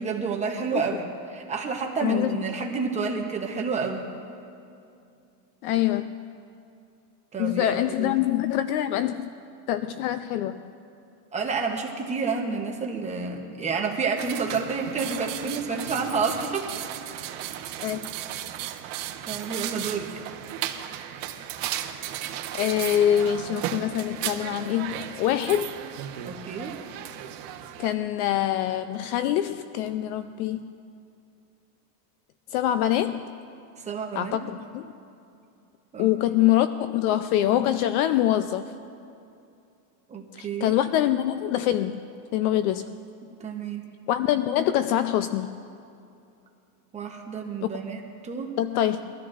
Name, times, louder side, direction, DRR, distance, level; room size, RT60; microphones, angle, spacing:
voice 1, 0.0-4.1 7.3-8.1 11.3-16.7 17.2-17.3 19.3-20.1 26.2-26.8 33.8-34.4 35.9-36.1 40.1-40.7 43.4-43.9 46.9-48.6, right 5 dB, 15° right, 1 dB, 0.9 m, -29 dB
voice 2, 2.0-2.4 5.6-6.2 7.4-9.3 9.7-10.6 17.8-18.1 22.5-25.8 27.8-30.7 32.5-33.3 34.1-34.9 36.0-38.6 40.3-42.0 42.3-43.0 44.1-45.6 47.6-47.7 48.6-49.1, left 12 dB, 65° left, 10 dB, 0.6 m, -25 dB
sound 1, 14.2-27.9, right 11 dB, 50° right, 1.0 m, -35 dB
23.5 x 13.5 x 2.5 m, 2.6 s
supercardioid pair, 160°, 48 cm